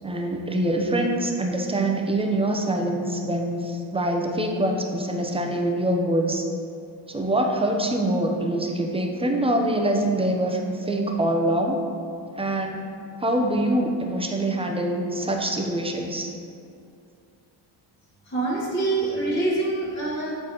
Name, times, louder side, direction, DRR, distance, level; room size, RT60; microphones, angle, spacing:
voice 1, 0.0-6.5 7.1-11.8 12.4-12.8 13.2-16.3, right 1 dB, 15° right, 2 dB, 0.8 m, -24 dB
voice 2, 18.3-20.3, right 2 dB, 25° left, -10 dB, 1.4 m, -25 dB
7.6 x 4.4 x 3.0 m, 2.5 s
cardioid pair, 70°, 44 cm